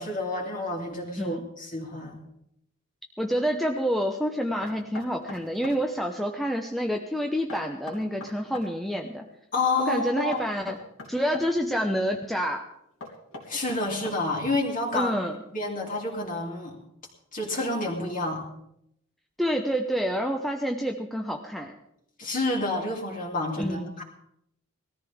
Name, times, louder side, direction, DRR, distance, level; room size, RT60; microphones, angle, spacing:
voice 1, 0.0-2.2 9.5-10.4 13.5-15.2 15.5-16.8 17.3-18.4 22.2-24.0, left 2 dB, 40° left, 0 dB, 3.2 m, -29 dB
voice 2, 3.2-9.3 9.8-10.8 11.1-12.7 14.9-15.4 19.4-21.7 23.6-23.9, equal, ahead, 2 dB, 0.8 m, -28 dB
Knock, 4.6-5.8 7.5-8.7 10.3-11.5 13.0-14.4, left 2 dB, 65° left, 3.3 m, -41 dB
20.0 x 14.0 x 3.6 m, 0.77 s
head